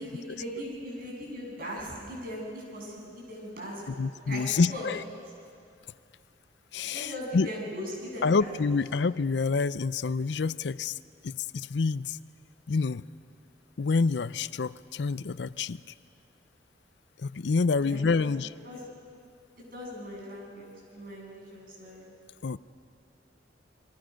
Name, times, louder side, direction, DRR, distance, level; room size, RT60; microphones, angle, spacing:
voice 1, 0.0-4.0 4.3-5.0 6.9-8.5 17.8-18.3 18.6-18.8 19.6-22.1, equal, 55° right, -2 dB, 7.6 m, -39 dB
voice 2, 3.9-5.0 6.7-7.5 8.2-11.0 11.2-12.2 12.7-13.0 13.8-15.8 17.2-18.5 22.4-22.6, left 4 dB, 65° left, 17 dB, 0.5 m, -27 dB
28.0 x 22.5 x 6.4 m, 2.4 s
head